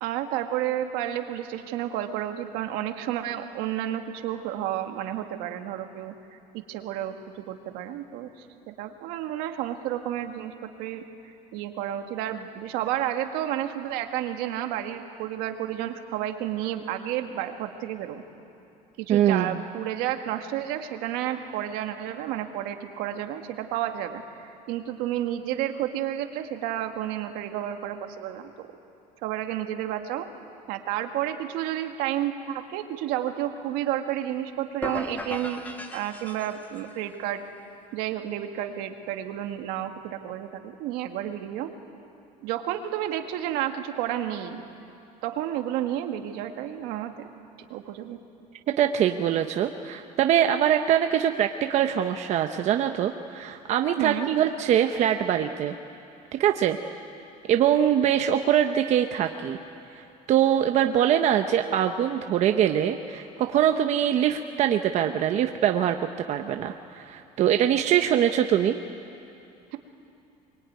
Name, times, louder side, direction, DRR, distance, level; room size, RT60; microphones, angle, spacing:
voice 1, 0.0-18.2 19.0-28.7 29.2-30.3 30.7-35.6 35.9-37.4 37.9-41.7 42.4-44.6 45.2-47.3 47.7-48.2 54.0-54.3 69.7-69.8, right 11 dB, 75° right, 5 dB, 2.0 m, -31 dB
voice 2, 19.1-19.6 48.8-55.8 56.4-56.8 57.5-59.6 59.9-60.0 60.3-66.0 66.3-68.8, right 10 dB, 45° right, 5 dB, 1.0 m, -23 dB
sound 1, 34.8-36.9, left 1 dB, 10° left, 1.7 m, -37 dB
24.0 x 23.5 x 9.5 m, 2.7 s
cardioid pair, 140°, 15 cm